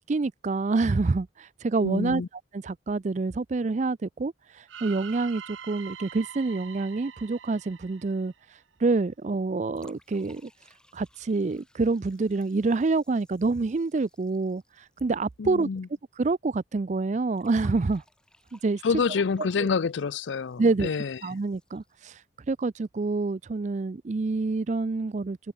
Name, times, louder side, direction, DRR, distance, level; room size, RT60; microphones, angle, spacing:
voice 1, 0.0-2.2 2.5-8.3 8.8-10.5 10.9-14.6 15.0-15.7 16.2-18.0 18.5-18.8 19.6-19.7 20.6-20.9 21.2-22.1 22.5-25.4, right 3 dB, 40° right, 0.4 m, -27 dB
voice 2, 1.8-2.3 15.4-15.9 18.8-21.2, left 5 dB, 75° left, 0.5 m, -27 dB
sound 1, 4.7-8.7, right 8 dB, 90° right, 0.9 m, -44 dB
sound 2, 9.7-15.9 16.1-16.2 17.4-22.4, left 1 dB, 5° left, 3.7 m, -62 dB
head